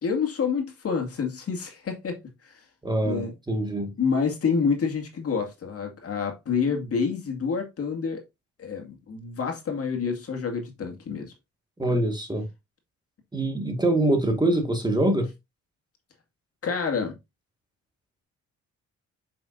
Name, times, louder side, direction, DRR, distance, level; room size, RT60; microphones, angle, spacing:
voice 1, 0.0-2.6 3.0-3.3 4.0-8.2 8.6-11.3 16.6-17.2, left 5 dB, 50° left, 2.2 m, -28 dB
voice 2, 2.8-3.9 11.8-12.5 13.3-15.3, right 1 dB, 15° right, 1.9 m, -24 dB
7.2 x 5.8 x 2.7 m
cardioid pair, 90°, 30 cm